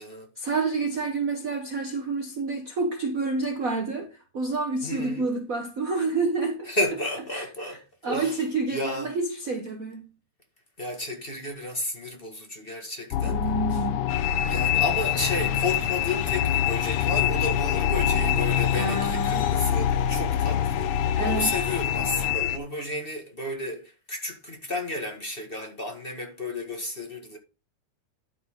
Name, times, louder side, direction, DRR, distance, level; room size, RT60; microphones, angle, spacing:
voice 1, 0.4-6.7 7.3-7.8 8.0-10.1 13.2-14.0 18.7-19.5 21.1-21.5, right 3 dB, 65° right, 0.8 m, -29 dB
voice 2, 4.8-5.3 6.6-8.4 8.7-9.1 10.8-13.4 14.5-27.4, left 2 dB, 20° left, 1.8 m, -32 dB
sound 1, 13.1-22.4, left 8 dB, 85° left, 1.2 m, -27 dB
sound 2, 14.1-22.6, left 11 dB, 70° left, 1.5 m, -29 dB
12.0 x 5.8 x 3.8 m
omnidirectional pair, 3.3 m